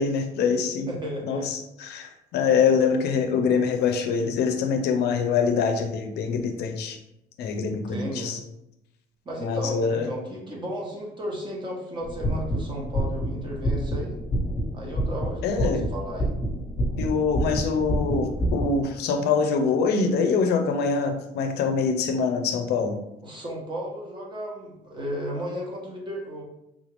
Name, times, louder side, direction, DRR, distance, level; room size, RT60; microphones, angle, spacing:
voice 1, 0.0-0.9 1.2-7.0 7.4-8.4 9.4-10.1 15.4-15.8 17.0-23.0, left 5 dB, 75° left, 5 dB, 0.5 m, -24 dB
voice 2, 0.9-1.5 7.9-8.4 9.2-14.2 14.7-16.3 23.2-26.4, equal, 30° right, -2 dB, 1.1 m, -34 dB
sound 1, 12.0-18.6, equal, 25° left, 1.1 m, -28 dB
3.5 x 2.4 x 3.3 m, 0.85 s
cardioid pair, 110°, 17 cm